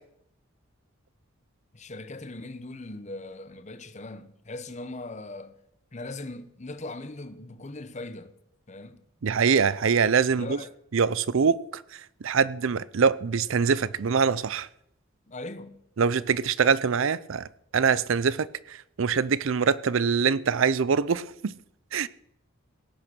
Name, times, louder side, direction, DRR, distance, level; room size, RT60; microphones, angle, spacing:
voice 1, 1.7-5.6 5.9-8.3 8.7-9.0 10.3-10.7 15.3-15.8, left 2 dB, 35° left, 0.9 m, -39 dB
voice 2, 9.2-10.6 10.9-11.8 12.2-14.7 16.0-17.5 17.7-21.5 21.9-22.1, right 6 dB, 70° right, 0.5 m, -24 dB
17.5 x 8.8 x 6.2 m
head